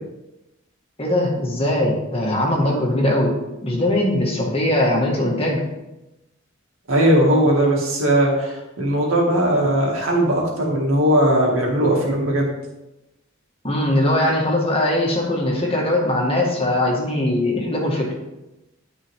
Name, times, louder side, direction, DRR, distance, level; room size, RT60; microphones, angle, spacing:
voice 1, 1.0-3.3 3.6-5.6 13.6-18.1, left 1 dB, 30° left, -1 dB, 1.9 m, -20 dB
voice 2, 6.9-12.5, right 1 dB, 75° right, -2 dB, 2.4 m, -18 dB
12.5 x 4.7 x 3.7 m, 0.97 s
head